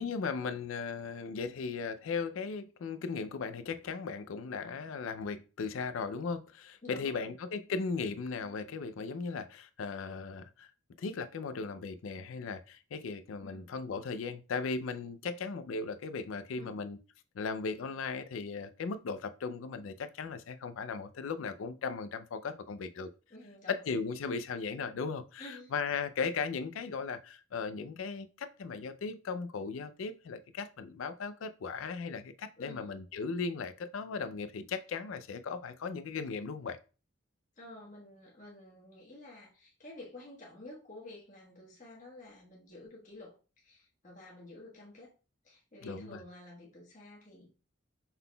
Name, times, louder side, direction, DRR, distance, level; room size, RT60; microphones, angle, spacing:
voice 1, 0.0-10.7 11.0-17.0 17.3-23.1 23.7-36.8 45.8-46.2, left 5 dB, 75° left, 0.4 m, -37 dB
voice 2, 6.8-7.3 13.4-13.7 16.6-16.8 23.3-24.0 25.4-25.8 32.6-32.9 37.6-45.1 45.4-47.5, left 1 dB, 35° left, 1.3 m, -51 dB
5.6 x 3.8 x 2.2 m
head